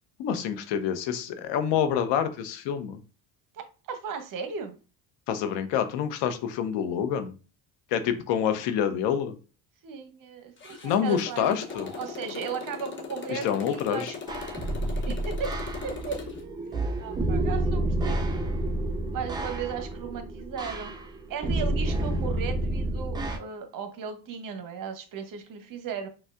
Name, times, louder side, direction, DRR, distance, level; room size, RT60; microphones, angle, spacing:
voice 1, 0.2-3.0 5.3-7.3 7.9-9.3 10.8-11.9 13.3-14.1, left 8 dB, 70° left, 9 dB, 0.7 m, -27 dB
voice 2, 3.5-4.7 9.8-11.5 12.0-14.2 14.8-15.5 15.8-16.2 17.0-18.8 19.1-20.9 21.3-26.1, right 6 dB, 45° right, 7 dB, 0.8 m, -36 dB
Motorcycle, 10.6-16.4, left 5 dB, 25° left, 0.7 m, -39 dB
sound 1, 11.7-12.2, left 1 dB, 10° left, 1.5 m, -46 dB
sound 2, 14.3-23.4, right 1 dB, 10° right, 0.4 m, -29 dB
4.3 x 2.3 x 2.4 m, 0.34 s
supercardioid pair, 90°, 45 cm